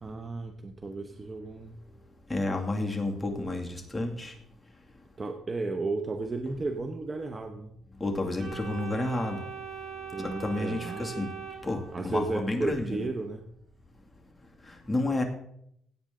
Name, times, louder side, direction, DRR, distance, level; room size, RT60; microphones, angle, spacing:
voice 1, 0.0-1.8 5.2-7.8 10.1-11.3 11.9-13.5, right 3 dB, 30° right, 6 dB, 1.0 m, -34 dB
voice 2, 2.3-4.3 8.0-9.4 10.2-11.3 11.6-13.0 14.9-15.2, left 2 dB, 15° left, 2 dB, 2.4 m, -30 dB
Organ, 8.4-12.3, right 7 dB, 55° right, 5.6 m, -41 dB
16.5 x 8.9 x 3.9 m, 0.73 s
cardioid pair, 90°, 0 cm